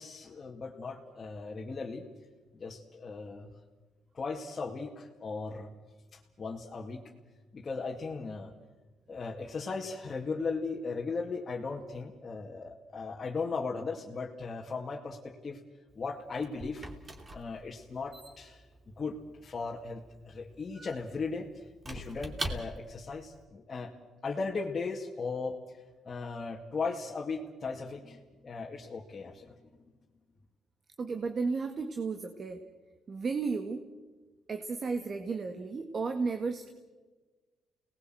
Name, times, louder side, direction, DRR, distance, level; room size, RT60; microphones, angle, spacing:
voice 1, 0.0-2.1 2.5-3.5 4.1-5.7 6.1-7.0 7.5-8.5 9.1-15.6 16.0-16.8 17.3-18.6 19.0-23.9 24.2-29.7, left 4 dB, 35° left, -3 dB, 2.4 m, -37 dB
Squeak / Wood, 15.9-23.1, right 1 dB, 25° right, 3.0 m, -43 dB
voice 2, 31.0-32.6 33.1-33.8 34.5-36.7, right 4 dB, 45° right, 6 dB, 1.8 m, -33 dB
29.5 x 19.5 x 7.9 m, 1.3 s
cardioid pair, 90°, 0 cm